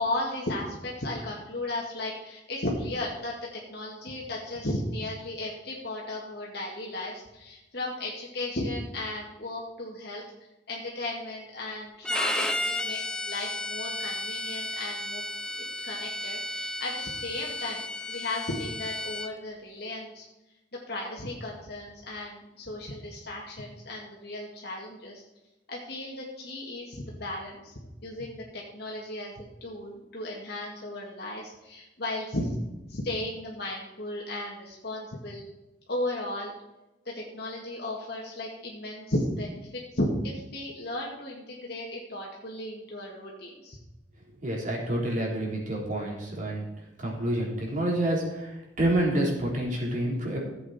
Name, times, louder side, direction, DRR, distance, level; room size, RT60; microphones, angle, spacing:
voice 1, 0.0-3.3 3.7-10.2 10.7-15.2 15.8-20.3 20.9-25.2 25.7-27.7 28.0-32.6 32.9-35.5 35.9-36.5 37.1-43.8, left 1 dB, 60° left, -3 dB, 2.1 m, -35 dB
Bowed string instrument, 12.0-19.3, left 1 dB, 5° left, 0.7 m, -33 dB
voice 2, 44.4-46.7 47.0-50.4, right 1 dB, 45° right, -2 dB, 3.7 m, -28 dB
15.5 x 8.0 x 4.4 m, 0.97 s
head